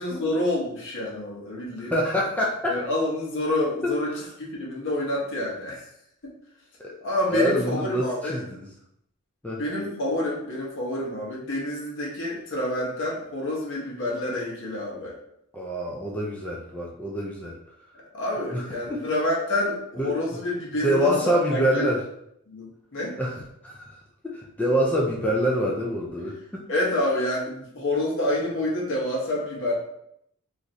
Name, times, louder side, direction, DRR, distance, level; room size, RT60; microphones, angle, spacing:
voice 1, 0.0-1.9 2.7-5.8 6.2-6.3 7.0-8.4 9.6-15.2 18.1-21.9 22.5-23.2 26.7-29.7, left 1 dB, 60° left, -3 dB, 0.8 m, -28 dB
voice 2, 1.9-2.8 3.8-3.9 6.8-6.9 7.3-8.7 9.4-9.6 15.5-17.6 18.5-19.0 20.0-20.1 20.8-22.0 23.2-23.9 24.2-26.6, equal, 5° left, -4 dB, 0.3 m, -26 dB
3.0 x 2.5 x 2.6 m, 0.74 s
head